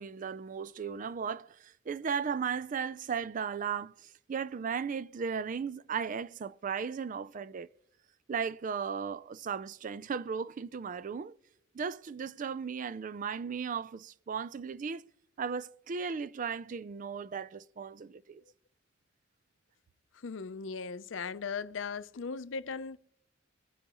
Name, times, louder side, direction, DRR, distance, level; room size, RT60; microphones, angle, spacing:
voice 1, 0.0-3.9 4.3-7.7 8.3-11.3 11.7-15.0 15.4-18.4, right 6 dB, 40° right, 0.4 m, -36 dB
voice 2, 20.2-23.0, left 5 dB, 70° left, 0.5 m, -38 dB
24.5 x 10.0 x 3.0 m
head